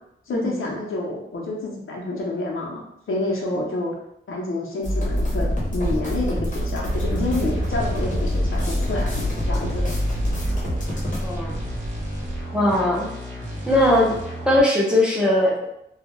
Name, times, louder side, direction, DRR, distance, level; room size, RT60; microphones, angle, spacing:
voice 1, 0.3-3.9 4.3-9.9, left 2 dB, 90° left, -2 dB, 0.7 m, -28 dB
sound 1, 4.8-11.2, equal, 40° left, 0.7 m, -26 dB
sound 2, 5.0-12.4, left 1 dB, 75° right, 0.4 m, -30 dB
sound 3, 6.9-14.6, equal, 40° right, 0.7 m, -33 dB
voice 2, 11.2-11.6 12.5-13.1 13.7-14.2 14.5-15.7, left 1 dB, 5° right, -4 dB, 0.5 m, -19 dB
2.2 x 2.0 x 3.0 m, 0.78 s
wide cardioid pair, 170°, 21 cm